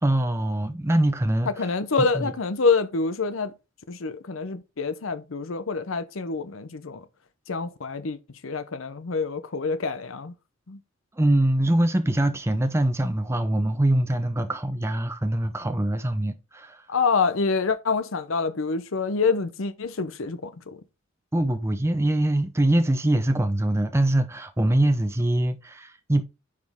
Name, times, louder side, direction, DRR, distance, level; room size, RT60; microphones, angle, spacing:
voice 1, 0.0-1.7 2.0-2.3 11.1-16.9 21.3-26.2, right 1 dB, 15° right, 0.6 m, -23 dB
voice 2, 1.6-3.5 3.9-7.0 7.5-8.2 8.4-10.3 10.7-10.8 16.9-20.8, left 4 dB, 75° left, 0.7 m, -26 dB
9.4 x 5.1 x 3.6 m
head